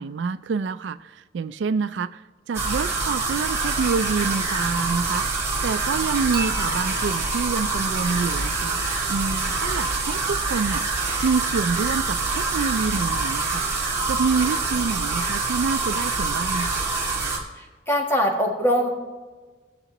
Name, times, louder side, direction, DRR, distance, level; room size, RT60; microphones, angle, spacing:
voice 1, 0.0-2.2 2.5-5.3 5.6-8.8 9.1-13.7 14.1-16.9, right 5 dB, 80° right, 0.4 m, -27 dB
sound 1, 2.5-17.4, right 3 dB, 15° right, 2.0 m, -25 dB
Dishes pots and pans / Chink clink, 6.3-9.5, equal, 55° right, 1.1 m, -37 dB
voice 2, 17.6-18.9, equal, 15° left, 1.5 m, -22 dB
17.5 x 6.8 x 3.0 m
head